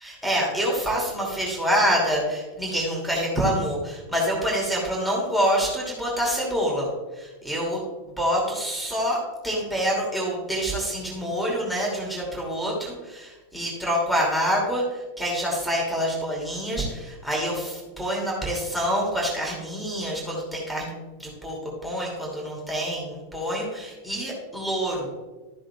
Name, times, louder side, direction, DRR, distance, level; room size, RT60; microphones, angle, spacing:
voice 1, 0.0-6.9 7.2-7.8 8.2-20.9 21.2-21.6 21.8-25.1, equal, ahead, -4 dB, 2.6 m, -26 dB
13.0 x 7.6 x 2.4 m, 1.2 s
figure-of-eight pair, 90°, 0 cm